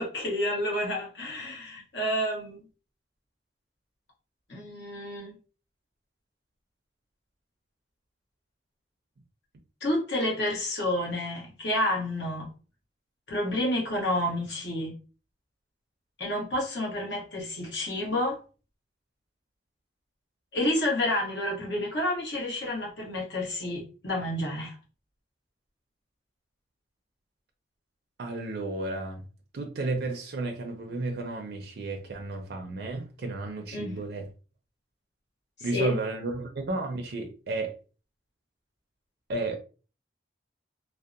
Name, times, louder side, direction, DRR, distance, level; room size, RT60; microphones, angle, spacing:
voice 1, 0.0-2.6 4.5-5.3 9.8-12.5 13.3-14.9 16.2-18.4 20.5-24.7 33.7-34.0 35.6-36.0, left 1 dB, 70° left, 1.0 m, -29 dB
voice 2, 28.2-29.2 29.5-34.3 35.6-37.7 39.3-39.6, right 2 dB, 60° right, 0.4 m, -32 dB
2.6 x 2.0 x 2.4 m
head